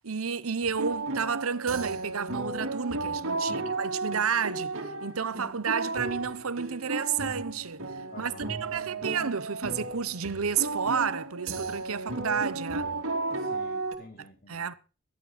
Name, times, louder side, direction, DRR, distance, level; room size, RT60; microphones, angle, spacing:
voice 1, 0.0-4.7 5.0-7.8 8.2-12.9 14.5-14.7, right 6 dB, 85° right, 0.9 m, -31 dB
sound 1, 0.6-14.0, right 2 dB, 70° right, 2.8 m, -34 dB
voice 2, 3.4-3.8 8.1-9.1 13.4-14.7, left 2 dB, 45° left, 3.0 m, -50 dB
17.0 x 12.0 x 4.2 m
head